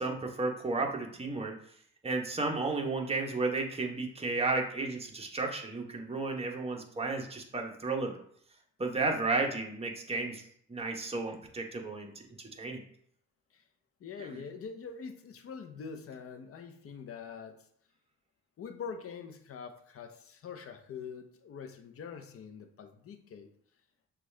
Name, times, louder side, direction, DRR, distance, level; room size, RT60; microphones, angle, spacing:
voice 1, 0.0-1.5 2.0-8.2 8.8-10.4 10.7-12.3 12.6-12.8 14.2-14.3, right 3 dB, 20° right, 1 dB, 0.9 m, -33 dB
voice 2, 14.0-17.6 18.6-23.5, left 6 dB, 50° left, 6 dB, 0.7 m, -44 dB
6.1 x 2.4 x 3.3 m, 0.64 s
cardioid pair, 90°, 30 cm